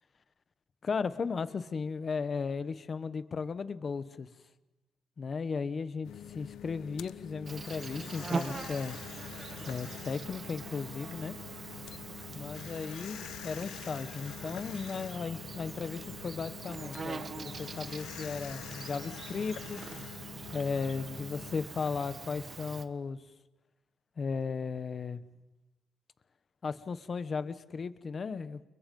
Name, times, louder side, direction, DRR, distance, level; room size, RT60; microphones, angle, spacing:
voice 1, 0.8-4.3 5.2-9.0 9.6-11.3 12.3-19.8 20.5-23.2 24.2-25.2 26.6-28.7, left 5 dB, 30° left, 13 dB, 1.0 m, -36 dB
sound 1, 6.0-21.7, left 11 dB, 85° left, 0.9 m, -46 dB
Insect, 7.5-22.9, right 4 dB, 25° right, 1.3 m, -43 dB
30.0 x 29.5 x 5.4 m, 1.0 s
cardioid pair, 175°, 0 cm